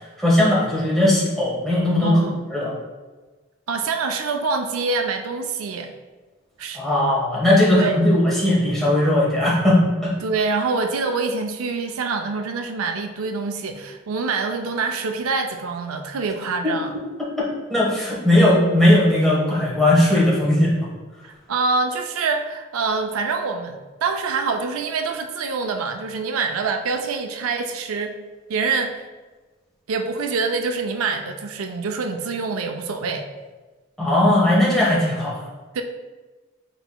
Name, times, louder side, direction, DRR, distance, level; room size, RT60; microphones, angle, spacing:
voice 1, 0.2-2.2 2.5-2.7 6.7-10.1 16.6-16.8 17.4-20.7 34.0-35.5, left 1 dB, ahead, -7 dB, 1.2 m, -18 dB
voice 2, 2.0-2.3 3.7-5.9 6.6-6.8 7.7-8.0 10.2-16.9 21.2-28.1 28.5-28.9 29.9-33.2 35.7-35.8, right 4 dB, 85° right, 5 dB, 0.4 m, -25 dB
6.0 x 4.0 x 2.2 m, 1.3 s
head